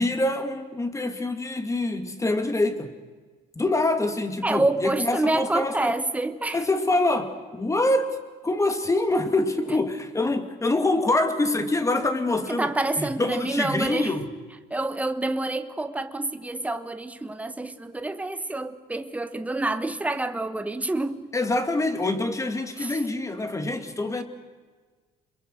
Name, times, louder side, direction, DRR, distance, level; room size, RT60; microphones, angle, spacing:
voice 1, 0.0-2.9 3.6-5.9 6.5-8.2 8.4-14.3 21.3-24.2, left 2 dB, 20° left, 2.3 m, -25 dB
voice 2, 4.4-6.6 12.4-14.1 14.7-21.3 22.8-23.0, right 2 dB, 10° right, 1.2 m, -27 dB
28.5 x 22.5 x 6.5 m
cardioid pair, 110°, 17 cm